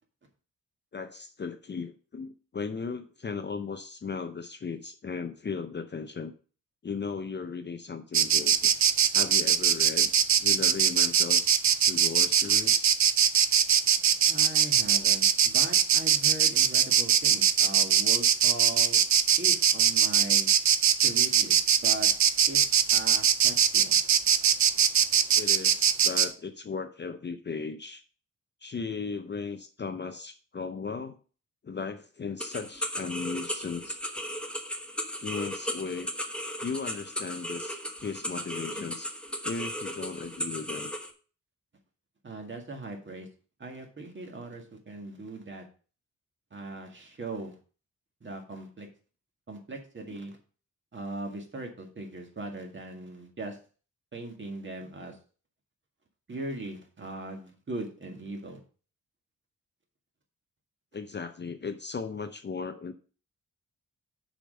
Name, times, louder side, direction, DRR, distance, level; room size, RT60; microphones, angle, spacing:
voice 1, 0.9-6.3 6.8-8.5 9.1-10.1 10.4-11.5 11.8-13.0 25.4-28.0 28.6-31.2 31.6-34.0 35.2-36.1 36.6-39.1 39.4-40.9 60.9-62.9, left 5 dB, 35° left, 8 dB, 0.6 m, -36 dB
Insect, 8.1-26.3, right 8 dB, 55° right, 0.6 m, -22 dB
voice 2, 14.3-19.0 19.4-20.5 21.0-22.1 22.5-22.6 22.9-24.0 42.2-43.3 43.6-45.7 46.5-47.6 48.2-48.9 49.5-50.4 50.9-53.6 54.1-55.2 56.3-58.6, right 2 dB, 35° right, 3 dB, 1.9 m, -39 dB
sound 1, 32.4-41.1, equal, 5° left, 1.0 m, -36 dB
6.8 x 5.2 x 6.4 m, 0.38 s
wide cardioid pair, 145°, 33 cm